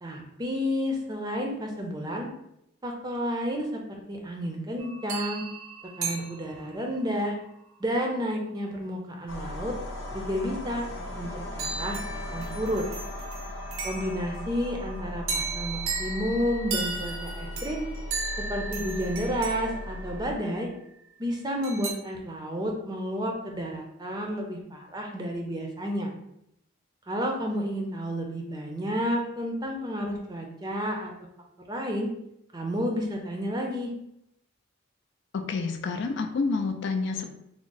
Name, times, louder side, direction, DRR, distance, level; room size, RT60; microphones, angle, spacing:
voice 1, 0.0-2.3 2.8-3.8 4.1-5.4 6.0-7.4 7.8-9.8 10.1-10.8 11.2-12.8 13.8-17.8 18.4-20.7 21.2-26.1 27.1-31.1 31.7-32.1 32.5-33.9, equal, 20° right, 1 dB, 0.5 m, -31 dB
sound 1, 4.8-7.0 11.6-14.4 15.3-20.6 21.6-21.9, right 4 dB, 80° right, 0.6 m, -36 dB
sound 2, 9.3-20.3, left 1 dB, 70° left, 0.8 m, -37 dB
voice 2, 35.3-37.3, left 4 dB, 55° left, 6 dB, 0.3 m, -28 dB
3.6 x 2.0 x 3.8 m, 0.79 s
head